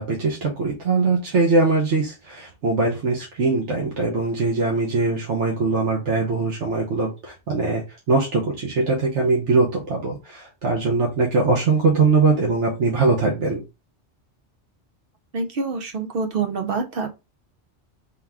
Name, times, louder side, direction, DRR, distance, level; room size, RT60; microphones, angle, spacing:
voice 1, 0.0-13.6, right 3 dB, 80° right, 1.3 m, -21 dB
voice 2, 15.3-17.1, right 4 dB, 55° right, 0.9 m, -26 dB
3.9 x 2.9 x 3.6 m
omnidirectional pair, 1.2 m